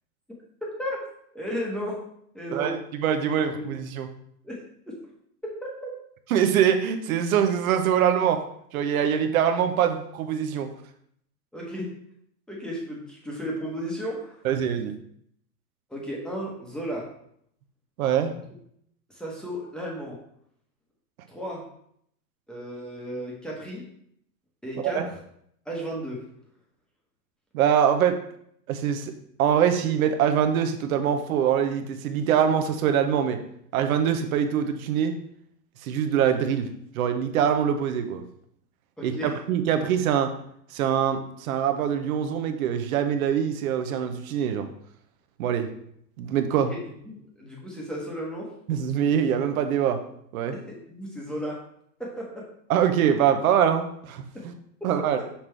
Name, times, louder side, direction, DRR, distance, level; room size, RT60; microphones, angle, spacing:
voice 1, 1.3-2.0 2.3-2.7 3.5-3.6 4.4-4.9 5.4-5.9 11.5-11.9 12.5-14.5 15.9-17.1 19.1-20.2 21.3-21.6 22.5-23.8 24.6-25.2 25.6-26.2 39.0-39.3 46.5-46.8 47.1-48.5 50.5-51.6 52.0-52.5 54.3-54.5 54.8-54.9, equal, ahead, -3 dB, 1.1 m, -34 dB
voice 2, 2.5-4.1 6.3-8.4 8.7-10.7 14.4-14.9 18.0-18.4 24.9-25.1 27.5-28.2 28.7-29.1 29.4-33.4 33.7-35.1 35.8-38.2 39.0-40.3 40.7-44.7 45.4-45.7 46.2-46.7 48.7-50.0 50.3-50.5 52.7-54.5 54.8-55.2, right 8 dB, 55° right, 7 dB, 0.9 m, -24 dB
6.0 x 5.8 x 3.3 m, 0.69 s
hypercardioid pair, 150°, 49 cm